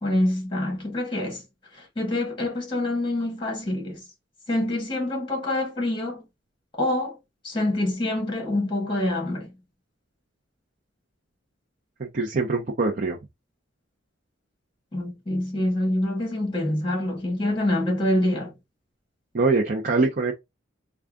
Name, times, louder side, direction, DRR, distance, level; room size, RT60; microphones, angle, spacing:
voice 1, 0.0-1.4 1.7-4.0 4.5-6.2 6.8-7.1 7.4-9.5 14.9-18.5, left 1 dB, 25° left, 1.7 m, -26 dB
voice 2, 12.0-13.2 19.3-20.3, right 3 dB, 45° right, 0.6 m, -23 dB
3.5 x 2.3 x 3.5 m
head